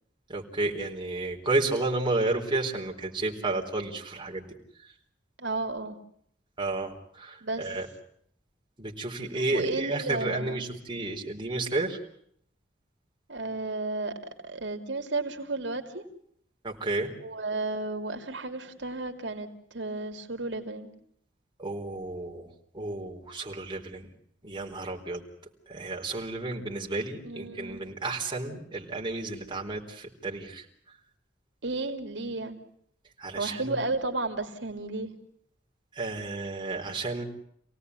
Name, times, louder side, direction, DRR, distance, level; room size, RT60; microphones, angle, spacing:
voice 1, 0.3-4.5 6.6-7.9 8.8-12.0 16.6-17.1 21.6-22.5 22.7-24.1 24.4-25.2 25.7-30.6 33.2-33.8 35.9-37.2, right 2 dB, 25° right, -1 dB, 4.1 m, -31 dB
voice 2, 5.4-6.0 7.4-7.7 9.3-10.6 13.3-14.1 14.4-16.0 17.2-20.9 27.2-27.8 31.6-32.6 33.4-35.1, right 2 dB, 80° right, 5 dB, 2.7 m, -33 dB
28.0 x 18.5 x 9.6 m, 0.69 s
head